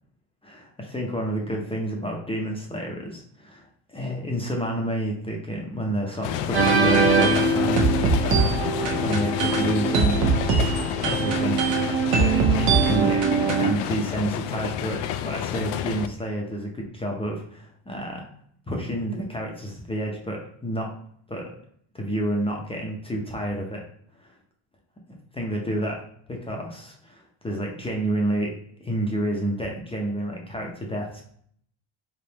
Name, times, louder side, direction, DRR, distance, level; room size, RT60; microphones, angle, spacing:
voice 1, 0.4-8.5 8.8-10.6 11.0-11.6 12.2-13.3 13.5-15.0 15.2-18.3 18.7-20.9 21.3-21.5 21.9-23.8 24.2-24.4 25.3-26.0 26.3-28.5 28.8-31.2, right 1 dB, 10° left, -1 dB, 0.5 m, -29 dB
sound 1, 6.2-16.1, left 10 dB, 90° left, 0.5 m, -29 dB
sound 2, 6.5-13.7, right 4 dB, 85° right, 1.1 m, -22 dB
4.3 x 3.5 x 2.8 m, 0.63 s
cardioid pair, 145°, 50 cm